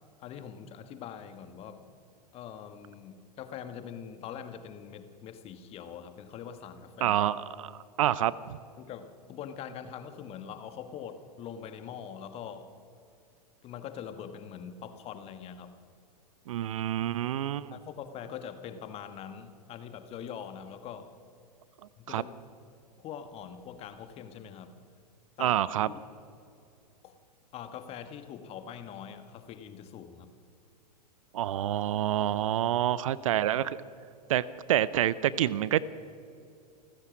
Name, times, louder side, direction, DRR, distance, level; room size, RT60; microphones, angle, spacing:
voice 1, 0.2-1.9 2.3-7.2 8.8-12.7 13.6-15.7 17.7-21.1 22.0-22.3 23.0-24.7 25.4-25.6 25.9-26.0 27.0-27.2 27.5-30.3, left 8 dB, 30° left, 10 dB, 1.5 m, -43 dB
voice 2, 7.0-8.6 16.5-17.7 22.1-22.2 25.4-25.9 31.3-33.8 34.3-35.8, right 12 dB, 50° right, 19 dB, 0.6 m, -28 dB
28.5 x 15.0 x 6.1 m, 2.6 s
figure-of-eight pair, 100°, 21 cm